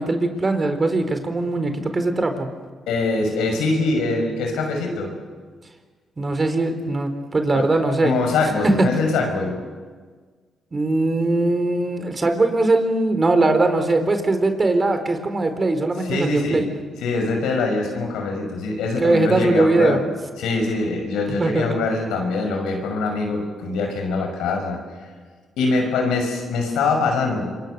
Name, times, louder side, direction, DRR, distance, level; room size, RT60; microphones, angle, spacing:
voice 1, 0.0-2.5 6.2-8.1 8.6-8.9 10.7-16.7 19.0-20.0 21.4-21.6, right 2 dB, 35° right, 7 dB, 4.1 m, -20 dB
voice 2, 2.9-5.1 7.5-7.7 8.0-9.5 16.0-16.7 17.0-20.0 20.4-24.8 25.6-27.6, left 3 dB, 85° left, 3 dB, 6.1 m, -23 dB
26.5 x 23.5 x 6.9 m, 1.5 s
supercardioid pair, 60°, 0 cm